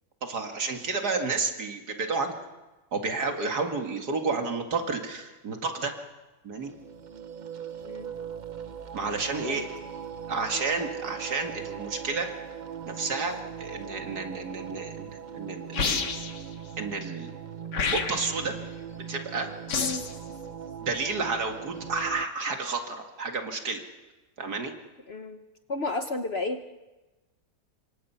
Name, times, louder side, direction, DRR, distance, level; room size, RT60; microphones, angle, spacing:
voice 1, 0.2-2.4 2.9-5.9 6.4-6.7 8.9-9.7 10.3-12.3 12.9-16.1 16.8-17.3 17.9-18.6 19.1-19.5 20.8-23.8 24.4-24.7, right 4 dB, 65° right, 4 dB, 2.6 m, -31 dB
sound 1, 6.5-22.3, right 8 dB, 45° right, 0.6 m, -40 dB
voice 2, 9.4-9.7 19.7-20.1 25.1-25.4 25.7-26.7, left 3 dB, 45° left, 7 dB, 1.0 m, -32 dB
sound 2, 15.7-16.4 17.7-18.4 19.7-20.2, left 5 dB, 80° left, 2.2 m, -29 dB
26.5 x 24.0 x 5.7 m, 1.1 s
omnidirectional pair, 1.8 m